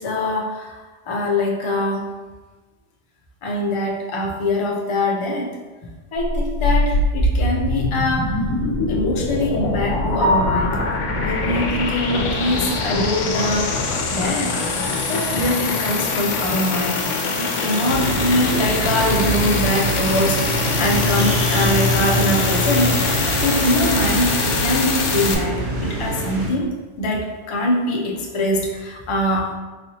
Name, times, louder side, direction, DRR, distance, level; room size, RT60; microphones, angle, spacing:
voice 1, 0.0-2.1 3.4-5.6 6.1-8.5 8.9-10.8 11.2-14.6 15.1-20.5 20.8-23.0 23.4-29.5, left 1 dB, 55° left, 0 dB, 0.3 m, -23 dB
sound 1, 6.2-25.4, left 3 dB, 90° left, 0.9 m, -23 dB
Piano, 10.2-14.2 14.5-14.6 15.1-15.2 15.6-15.7 18.8-18.9 27.3-27.6, left 1 dB, 30° left, 1.2 m, -28 dB
sound 2, 17.9-26.5, equal, 65° right, 0.9 m, -24 dB
4.0 x 2.9 x 2.7 m, 1.3 s
omnidirectional pair, 1.2 m